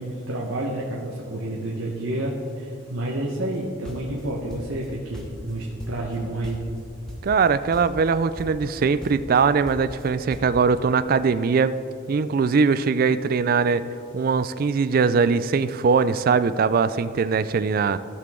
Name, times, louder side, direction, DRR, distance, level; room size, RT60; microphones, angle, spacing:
voice 1, 0.0-6.6, right 1 dB, 75° right, -3 dB, 1.1 m, -29 dB
sound 1, 3.5-4.9 5.1-6.2 6.4-6.8 7.1-7.5 7.7-8.1 8.4-8.8 9.0-10.6, equal, 5° left, 1.0 m, -39 dB
voice 2, 7.2-11.7 12.1-13.8 14.1-18.0, right 5 dB, 45° right, 14 dB, 0.3 m, -21 dB
16.0 x 5.9 x 3.7 m, 2.5 s
head